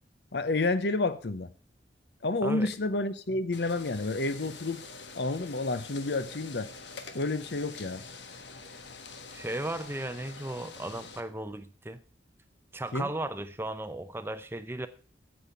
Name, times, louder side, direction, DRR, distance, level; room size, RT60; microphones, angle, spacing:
voice 1, 0.3-1.5 2.2-4.8 5.1-6.7 7.1-8.0 12.9-13.1, left 2 dB, 65° left, 0.8 m, -30 dB
sound 1, 3.5-11.2, left 4 dB, 85° left, 1.3 m, -46 dB
voice 2, 9.3-12.0 12.7-14.9, right 1 dB, 15° right, 0.6 m, -35 dB
8.9 x 8.4 x 5.7 m
head